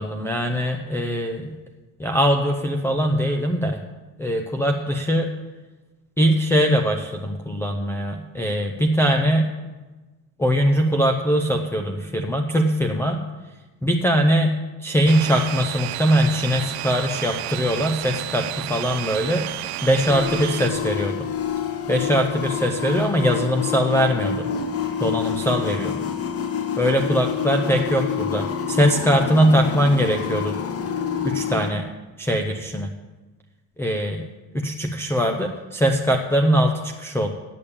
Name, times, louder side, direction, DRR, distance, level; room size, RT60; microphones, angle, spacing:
voice 1, 0.0-1.5 2.0-3.8 4.2-5.3 6.2-9.5 10.4-13.2 13.8-14.5 14.8-19.4 19.8-21.3 21.9-24.5 25.0-26.0 26.8-30.6 31.2-31.9 32.2-32.9 33.8-34.3 34.5-37.3, equal, 5° left, 4 dB, 0.6 m, -21 dB
sound 1, 15.1-20.7, right 15 dB, 85° right, 0.7 m, -31 dB
sound 2, 20.1-31.7, left 7 dB, 40° left, 1.0 m, -27 dB
8.7 x 8.4 x 8.6 m, 1.2 s
cardioid pair, 140°, 38 cm